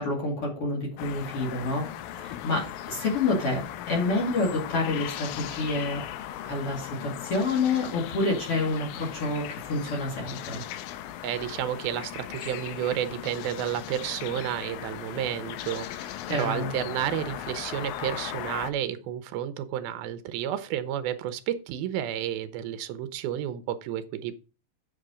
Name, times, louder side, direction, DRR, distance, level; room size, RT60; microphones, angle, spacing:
voice 1, 0.0-1.9 2.2-6.0 6.4-10.6 16.3-16.7, left 2 dB, 45° left, -2 dB, 2.8 m, -28 dB
sound 1, 1.0-18.7, left 12 dB, 85° left, 2.4 m, -38 dB
voice 2, 11.2-24.3, right 10 dB, 85° right, 12 dB, 2.7 m, -31 dB
7.9 x 6.6 x 5.0 m, 0.34 s
omnidirectional pair, 4.2 m